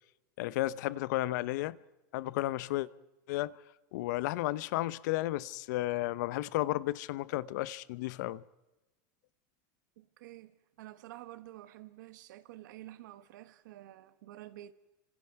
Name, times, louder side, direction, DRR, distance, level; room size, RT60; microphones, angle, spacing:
voice 1, 0.4-1.8 2.1-2.9 3.3-3.6 3.9-8.4, left 17 dB, 70° left, 0.8 m, -33 dB
voice 2, 10.0-14.7, right 15 dB, 80° right, 1.4 m, -50 dB
28.5 x 26.0 x 4.7 m
supercardioid pair, 135°, 10 cm